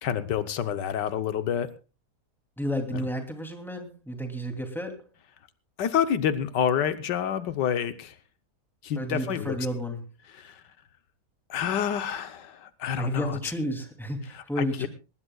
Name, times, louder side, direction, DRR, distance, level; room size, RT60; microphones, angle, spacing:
voice 1, 0.0-1.7 2.9-3.0 5.8-8.1 8.8-9.6 10.3-10.6 11.5-13.4 14.3-14.9, left 8 dB, 85° left, 11 dB, 1.6 m, -28 dB
voice 2, 2.6-5.0 9.0-10.0 13.0-14.9, equal, ahead, 4 dB, 2.7 m, -32 dB
20.0 x 19.0 x 2.3 m, 0.32 s
omnidirectional pair, 1.8 m